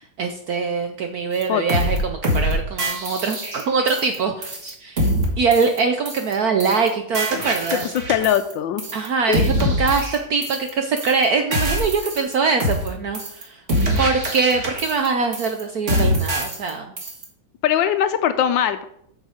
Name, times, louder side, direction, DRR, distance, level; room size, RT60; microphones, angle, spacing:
voice 1, 0.0-5.1 5.4-7.9 8.9-13.6 14.0-16.9, right 4 dB, 65° right, 5 dB, 0.9 m, -23 dB
sound 1, 1.4-1.5 1.7-2.0 2.2-2.5 2.8-4.2 4.4-4.7 5.0-5.2 5.5-5.8 6.1-6.3 6.6-6.9 7.1-8.5 8.8-9.1 9.3-10.7 11.0-11.2 11.5-12.3 12.6-12.9 13.1-13.4 13.7-15.1 15.3-15.6 15.9-16.7 17.0-17.2, equal, 35° right, 1.9 m, -24 dB
voice 2, 8.1-8.8 9.3-9.4 17.6-18.8, left 10 dB, 75° left, 10 dB, 1.2 m, -20 dB
8.3 x 6.4 x 4.9 m, 0.72 s
omnidirectional pair, 2.3 m